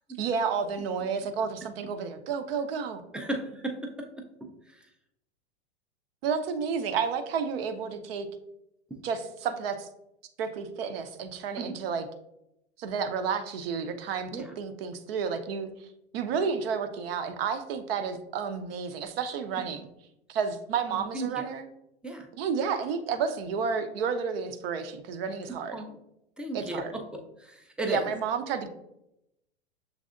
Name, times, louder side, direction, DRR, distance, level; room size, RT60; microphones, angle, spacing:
voice 1, 0.2-3.0 6.2-8.3 9.0-9.9 10.4-12.1 12.8-15.9 16.1-19.9 20.3-21.6 22.3-25.8 26.5-26.9 27.9-28.7, right 6 dB, 60° right, 8 dB, 0.7 m, -31 dB
voice 2, 3.1-4.9 8.9-9.1 11.6-11.8 14.3-14.5 20.9-21.4 22.0-22.3 25.5-26.0 26.4-28.1, right 1 dB, 5° right, 3 dB, 0.4 m, -36 dB
6.4 x 3.3 x 2.5 m, 0.83 s
hypercardioid pair, 95°, 34 cm